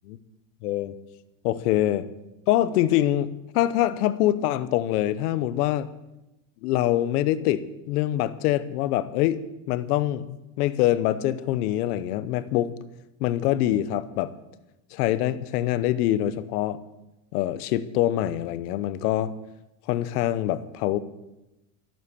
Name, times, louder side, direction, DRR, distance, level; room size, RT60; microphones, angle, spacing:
voice 1, 0.6-0.9 1.4-2.0 2.5-5.9 6.6-9.4 9.7-12.7 13.2-14.3 14.9-16.8 17.3-19.3 19.9-21.0, left 13 dB, 90° left, 15 dB, 1.1 m, -24 dB
14.0 x 9.2 x 7.1 m, 0.95 s
supercardioid pair, 150°, 45 cm